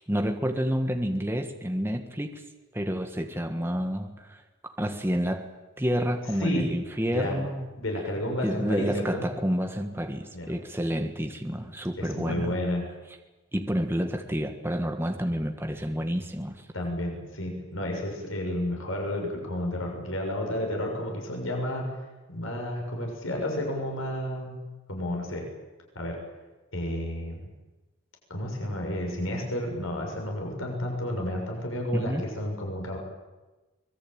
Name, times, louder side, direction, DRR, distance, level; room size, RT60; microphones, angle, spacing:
voice 1, 0.1-2.4 2.7-5.5 5.8-7.7 8.4-12.6 13.5-16.6 31.9-32.3, equal, 10° right, 5 dB, 1.6 m, -29 dB
voice 2, 7.0-7.4 7.8-9.2 10.3-10.5 12.0-12.8 16.7-21.8 22.3-24.6 24.9-25.5 25.9-26.2 26.7-27.4 28.3-33.0, left 1 dB, 80° left, 1 dB, 6.8 m, -31 dB
25.0 x 21.5 x 9.0 m, 1.1 s
head